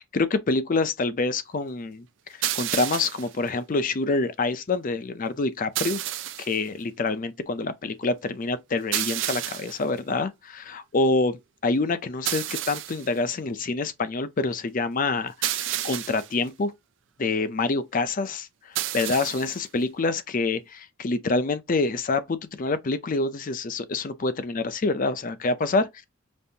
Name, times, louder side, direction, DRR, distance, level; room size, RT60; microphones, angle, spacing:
voice 1, 0.0-2.1 2.5-6.0 6.4-16.7 17.2-25.9, left 3 dB, 40° left, 0.5 m, -26 dB
sound 1, 2.4-3.3 5.8-6.6 8.9-9.8 12.3-13.1 15.4-16.3 18.8-19.6, right 13 dB, 60° right, 0.4 m, -30 dB
5.2 x 2.6 x 2.7 m
head